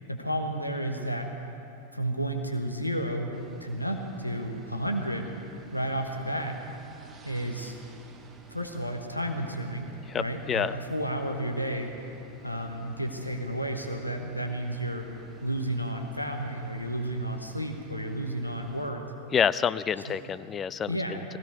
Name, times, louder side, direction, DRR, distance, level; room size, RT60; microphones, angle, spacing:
voice 1, 0.1-1.3 1.9-3.3 3.6-5.3 5.7-6.6 7.2-7.8 8.5-9.9 10.2-11.9 12.4-15.1 15.4-19.0 20.1-20.2 20.9-21.2, right 1 dB, 90° left, 4 dB, 1.2 m, -32 dB
sound 1, 3.3-18.9, right 5 dB, 20° right, 1.2 m, -52 dB
voice 2, 10.1-10.8 19.3-20.9, left 7 dB, 25° left, 15 dB, 0.4 m, -27 dB
18.5 x 16.0 x 4.8 m, 2.9 s
figure-of-eight pair, 90°, 0 cm